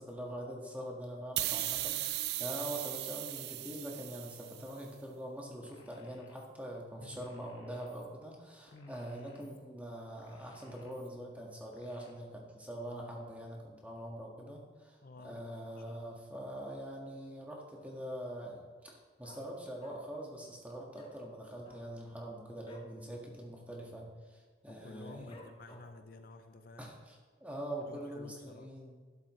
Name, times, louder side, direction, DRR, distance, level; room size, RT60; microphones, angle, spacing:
voice 1, 0.0-25.4 26.8-29.0, right 1 dB, 10° right, -2 dB, 1.7 m, -44 dB
sound 1, 1.4-4.7, right 14 dB, 60° right, 0.4 m, -37 dB
sound 2, 5.6-6.5 7.1-8.1 8.7-9.6 10.2-11.1 11.7-12.1, left 2 dB, 85° left, 1.7 m, -63 dB
voice 2, 15.0-15.4 15.9-16.2 24.7-26.9 27.9-28.7, left 2 dB, 50° left, 6 dB, 0.6 m, -52 dB
Dog, 17.7-18.2 18.5-18.6 18.8-20.3 20.5-20.6 20.9-21.2 21.5-23.0 23.3-23.5 23.7-24.2 24.6-24.7 25.3-26.1 26.6-26.7, left 1 dB, 30° left, 1.4 m, -56 dB
12.0 x 11.5 x 3.2 m, 1.5 s
head